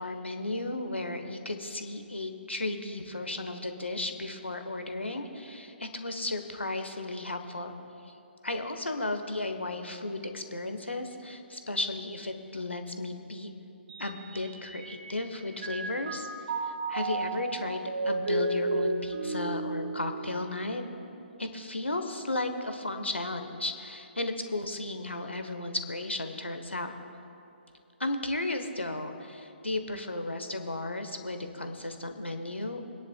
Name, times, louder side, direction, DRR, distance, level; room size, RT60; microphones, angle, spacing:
voice 1, 0.0-7.7 8.1-8.2 8.4-13.5 14.0-16.3 16.9-20.8 21.4-26.9 28.0-32.8, left 2 dB, 85° left, 6 dB, 1.1 m, -34 dB
Mallet percussion, 13.9-15.3 15.6-21.0, right 2 dB, 55° right, 1.6 m, -33 dB
27.5 x 10.0 x 2.3 m, 2.8 s
figure-of-eight pair, 130°, 6 cm